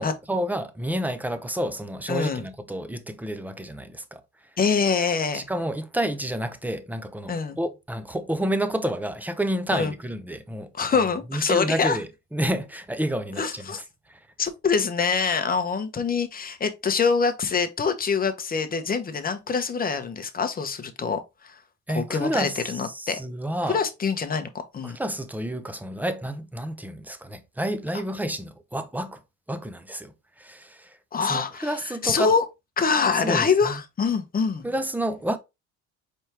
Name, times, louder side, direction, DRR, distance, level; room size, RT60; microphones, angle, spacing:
voice 1, 0.0-4.2 5.3-10.7 11.3-13.7 14.1-14.2 21.9-23.8 24.8-29.2 29.5-32.3 33.2-33.8 34.6-35.4, right 1 dB, 5° right, 0.6 m, -30 dB
voice 2, 2.1-2.4 4.6-5.4 7.3-7.6 9.7-9.9 10.7-12.0 13.4-13.8 14.4-21.6 21.9-23.2 23.6-24.5 24.7-25.0 31.1-32.4 32.8-34.6, left 5 dB, 25° left, 0.9 m, -25 dB
4.4 x 3.4 x 2.9 m
supercardioid pair, 85°, 34 cm